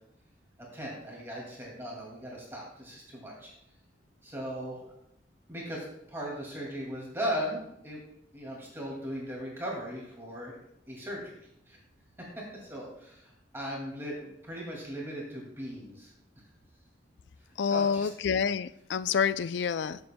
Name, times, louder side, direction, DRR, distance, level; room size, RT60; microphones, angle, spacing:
voice 1, 0.6-3.5 4.2-4.8 5.5-8.0 8.3-10.6 10.9-11.8 12.2-16.1 17.6-18.1, equal, 15° right, -3 dB, 2.2 m, -38 dB
voice 2, 17.6-20.0, left 6 dB, 65° left, 16 dB, 0.3 m, -28 dB
14.5 x 6.9 x 2.2 m, 0.78 s
head